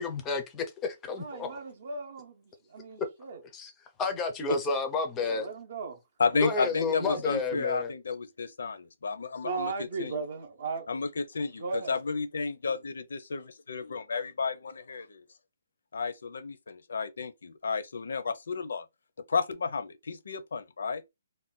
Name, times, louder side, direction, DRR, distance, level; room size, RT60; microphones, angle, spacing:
voice 1, 0.0-1.6 3.5-3.7 4.0-5.5 6.4-7.9, left 4 dB, 10° left, 0.4 m, -31 dB
voice 2, 1.2-3.4 5.2-6.0 6.3-7.4 9.4-10.9 11.6-12.0, right 4 dB, 45° right, 0.6 m, -37 dB
voice 3, 6.2-10.1 10.9-15.2 15.9-18.9 19.3-21.0, left 4 dB, 75° left, 0.5 m, -32 dB
2.5 x 2.1 x 3.7 m
hypercardioid pair, 180°, 0 cm